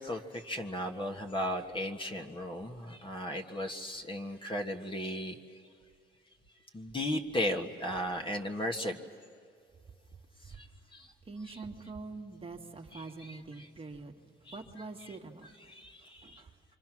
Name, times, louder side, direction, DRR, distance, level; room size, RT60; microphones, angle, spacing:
voice 1, 0.0-5.4 6.7-9.0 10.5-11.1 11.5-11.6 12.9-13.7 14.4-14.6 15.0-15.1 15.6-16.4, left 1 dB, 25° left, 3 dB, 1.5 m, -36 dB
voice 2, 10.1-10.7 11.2-15.5 16.0-16.5, right 3 dB, 30° right, 2 dB, 1.7 m, -45 dB
27.5 x 25.5 x 6.1 m, 2.3 s
cardioid pair, 90°, 20 cm